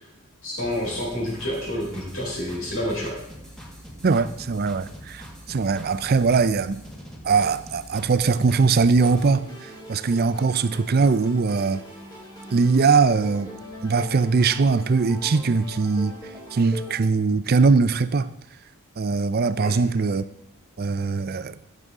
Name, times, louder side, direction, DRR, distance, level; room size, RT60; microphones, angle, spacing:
voice 1, 0.4-3.1 19.6-19.8, left 1 dB, 70° left, 4.5 m, -29 dB
sound 1, 0.6-9.3, equal, 5° left, 1.8 m, -43 dB
voice 2, 4.0-6.8 7.2-11.8 12.5-13.5 13.8-16.1 16.5-18.3 19.0-20.2 20.8-21.6, right 4 dB, 45° right, 0.4 m, -21 dB
sound 2, 9.0-17.0, equal, 20° left, 3.1 m, -41 dB
15.0 x 6.8 x 3.7 m
head